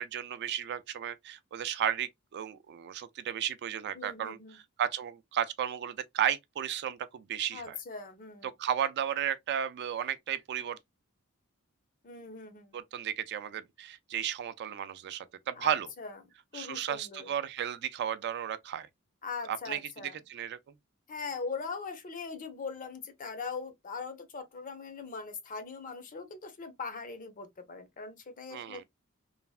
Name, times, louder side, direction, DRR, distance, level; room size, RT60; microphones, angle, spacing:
voice 1, 0.0-4.4 4.8-7.8 8.4-10.8 12.7-15.9 16.5-18.9 19.5-19.8 20.3-20.6 28.5-28.8, right 9 dB, 50° right, 0.3 m, -34 dB
voice 2, 3.9-4.6 7.5-8.5 12.0-12.8 15.6-16.2 16.5-17.3 19.2-20.2 21.1-28.8, left 4 dB, 40° left, 0.6 m, -41 dB
3.2 x 2.0 x 2.3 m
head